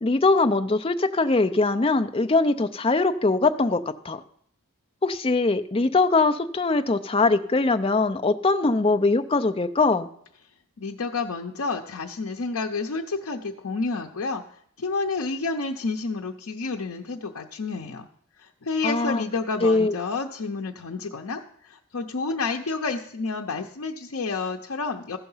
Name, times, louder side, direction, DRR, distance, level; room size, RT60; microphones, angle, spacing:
voice 1, 0.0-4.2 5.0-10.1 18.8-19.2 19.6-19.9, left 3 dB, 25° left, 9 dB, 0.5 m, -22 dB
voice 2, 10.8-18.1 18.4-25.2, left 4 dB, 80° left, 1 dB, 0.7 m, -30 dB
14.5 x 5.7 x 5.5 m, 0.65 s
head